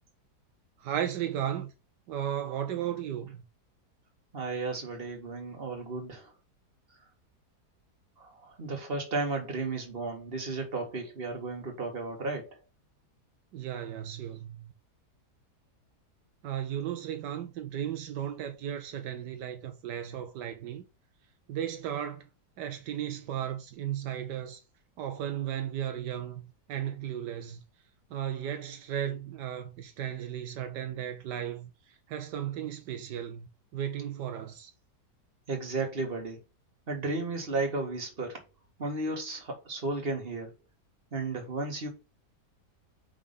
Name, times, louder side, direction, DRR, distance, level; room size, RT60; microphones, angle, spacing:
voice 1, 0.8-1.7 2.1-3.4 13.5-14.7 16.4-20.8 21.5-22.3 22.6-24.6 25.0-27.6 28.1-31.7 32.1-34.7, right 10 dB, 80° right, 1.4 m, -35 dB
voice 2, 4.3-6.3 8.2-12.6 35.5-36.4 36.9-38.4 38.8-40.5 41.1-41.9, right 3 dB, 35° right, 1.9 m, -34 dB
5.5 x 3.6 x 5.3 m
omnidirectional pair, 1.8 m